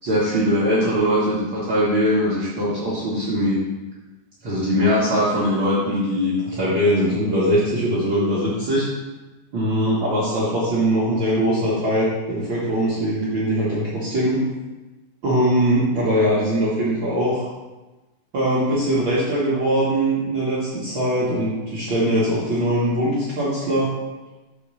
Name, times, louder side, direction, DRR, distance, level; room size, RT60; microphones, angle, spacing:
voice 1, 0.0-3.6 4.4-8.9 9.5-14.4 15.2-17.4 18.3-23.9, equal, 90° right, -9 dB, 1.0 m, -21 dB
6.6 x 4.2 x 6.2 m, 1.1 s
omnidirectional pair, 4.7 m